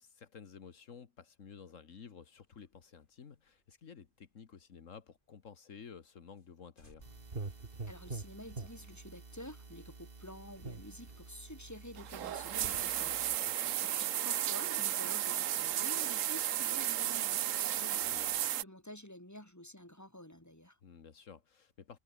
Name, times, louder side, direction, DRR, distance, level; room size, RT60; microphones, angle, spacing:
voice 1, 0.0-7.1 13.4-13.8 18.0-18.4 20.8-22.0, left 6 dB, 80° left, 1.8 m, -53 dB
sound 1, 2.5-5.3 5.6-5.7 6.0-6.1 6.4-6.5 6.8-8.5, left 1 dB, 40° left, 8.4 m, -66 dB
sound 2, 7.0-13.4, right 3 dB, 45° right, 2.4 m, -47 dB
voice 2, 7.9-18.0 18.6-20.8, left 1 dB, 10° left, 5.1 m, -50 dB
sound 3, 12.0-18.6, right 12 dB, 80° right, 1.1 m, -34 dB
omnidirectional pair, 1.3 m